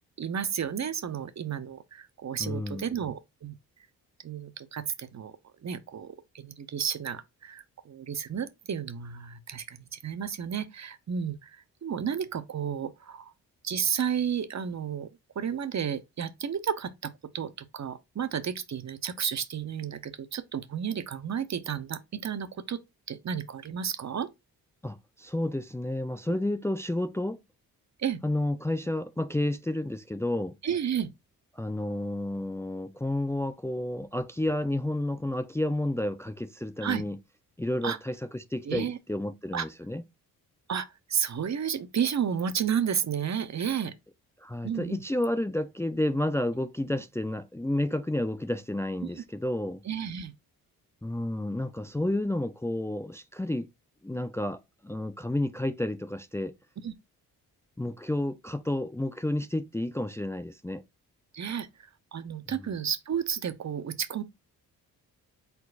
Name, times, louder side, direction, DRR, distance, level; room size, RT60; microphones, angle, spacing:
voice 1, 0.2-3.5 4.2-5.3 5.6-13.3 13.6-15.1 15.3-22.8 23.1-24.3 26.3-26.4 28.0-28.2 30.6-31.1 36.8-37.0 37.8-38.0 38.6-39.0 39.5-39.7 40.7-43.9 44.6-45.0 49.0-49.2 49.8-50.3 56.8-56.9 61.3-61.7 62.1-64.2, right 8 dB, 45° right, 0.9 m, -32 dB
voice 2, 2.4-2.9 24.8-27.4 28.2-30.5 31.5-37.2 37.6-40.0 44.4-49.8 51.0-53.7 54.0-56.5 57.8-60.8 62.5-62.7, left 1 dB, 5° left, 0.5 m, -31 dB
4.4 x 4.0 x 2.5 m
supercardioid pair, 55°, 38 cm